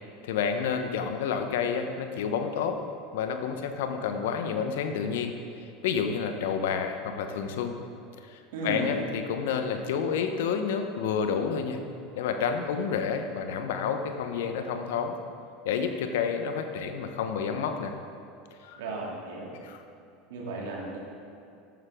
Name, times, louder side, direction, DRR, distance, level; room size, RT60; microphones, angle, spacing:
voice 1, 0.2-2.8 3.1-5.3 5.8-7.8 8.3-11.8 12.1-15.2 15.6-17.9 18.6-18.8 19.6-19.8, left 6 dB, 70° left, 6 dB, 1.1 m, -29 dB
voice 2, 8.5-9.0 18.8-19.5 20.3-21.0, right 2 dB, 70° right, -3 dB, 2.9 m, -34 dB
14.5 x 11.0 x 3.8 m, 2.6 s
hypercardioid pair, 80°, 0 cm